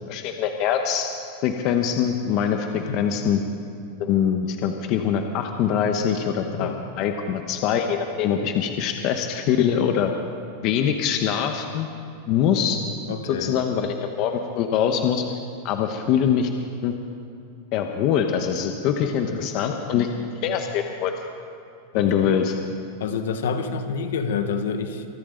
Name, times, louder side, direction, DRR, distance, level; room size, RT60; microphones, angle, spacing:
voice 1, 0.1-1.1 1.4-3.4 4.0-10.1 10.6-11.9 12.3-12.8 13.2-15.2 15.6-16.5 16.8-16.9 17.7-20.1 20.4-21.1 21.9-22.5, left 8 dB, 45° left, 5 dB, 1.0 m, -23 dB
voice 2, 2.7-3.0 6.6-6.8 13.1-13.6 19.0-19.5 19.9-20.4 21.9-22.3 23.0-25.0, left 5 dB, 85° left, 8 dB, 1.3 m, -29 dB
24.5 x 13.0 x 3.9 m, 2.6 s
supercardioid pair, 145°, 0 cm